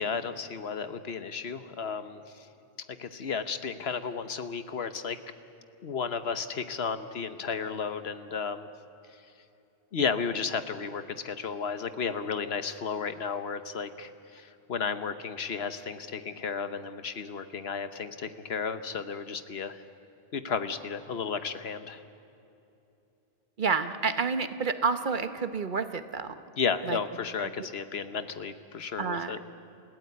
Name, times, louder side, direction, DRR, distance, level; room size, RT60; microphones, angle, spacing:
voice 1, 0.0-2.5 3.0-5.2 5.8-8.7 9.9-19.8 20.3-22.0 26.6-29.4, left 5 dB, 75° left, 11 dB, 1.3 m, -33 dB
voice 2, 23.6-26.4 26.9-27.0 27.4-27.5 29.0-29.4, right 5 dB, 50° right, 10 dB, 1.1 m, -29 dB
29.0 x 15.5 x 9.4 m, 2.8 s
omnidirectional pair, 1.1 m